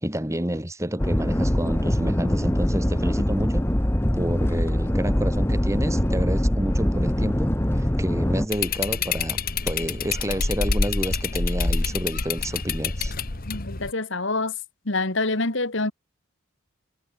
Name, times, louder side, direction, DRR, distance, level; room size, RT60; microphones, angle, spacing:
voice 1, 0.0-3.7 4.1-9.4 9.6-13.1, equal, 15° right, 2.2 m, -29 dB
sound 1, 1.0-8.5, equal, 10° left, 1.0 m, -23 dB
sound 2, 8.5-13.9, left 4 dB, 40° left, 1.3 m, -26 dB
voice 2, 13.5-14.5 14.9-15.9, left 3 dB, 55° left, 1.9 m, -26 dB
head